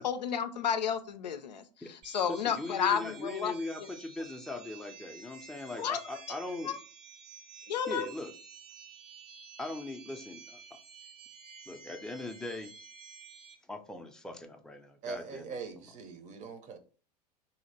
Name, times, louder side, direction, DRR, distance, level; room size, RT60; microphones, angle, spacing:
voice 1, 0.0-3.5 5.8-6.0 6.7-6.8 7.7-8.1, left 8 dB, 80° left, 0.5 m, -31 dB
sound 1, 2.0-13.6, right 5 dB, 70° right, 0.9 m, -52 dB
voice 2, 2.3-6.8 7.9-8.3 9.6-10.8 11.7-12.8 13.7-16.0, left 2 dB, 5° left, 0.5 m, -40 dB
voice 3, 15.0-16.8, right 4 dB, 35° right, 0.7 m, -42 dB
2.8 x 2.8 x 4.0 m
figure-of-eight pair, 80°, 21 cm